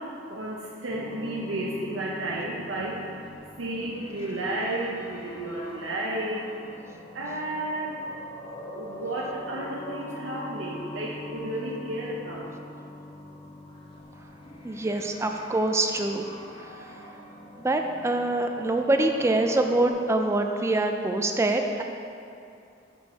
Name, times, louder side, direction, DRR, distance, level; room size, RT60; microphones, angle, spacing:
voice 1, 0.0-6.5 7.1-8.0 8.7-12.5, right 1 dB, 80° right, -4 dB, 0.7 m, -32 dB
sound 1, 0.9-19.9, left 1 dB, 25° left, 0.8 m, -43 dB
voice 2, 14.6-16.2 16.8-16.9 17.6-21.8, right 2 dB, 15° right, 4 dB, 0.3 m, -25 dB
6.5 x 4.5 x 5.2 m, 2.6 s
head